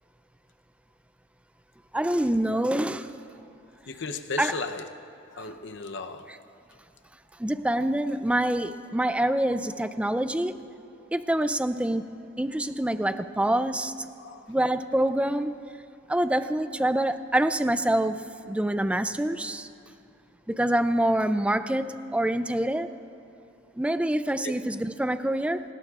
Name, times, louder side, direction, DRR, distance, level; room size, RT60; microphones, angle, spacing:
voice 1, 1.9-3.1 4.4-4.6 7.4-10.6 11.1-12.1 12.4-14.1 14.5-15.5 16.1-19.7 20.5-22.9 23.8-25.6, right 1 dB, 5° right, 0.3 m, -26 dB
voice 2, 2.5-2.8 3.9-4.9 5.3-6.4 14.2-14.5 24.4-24.5, left 3 dB, 60° left, 0.7 m, -36 dB
27.0 x 19.0 x 2.4 m
head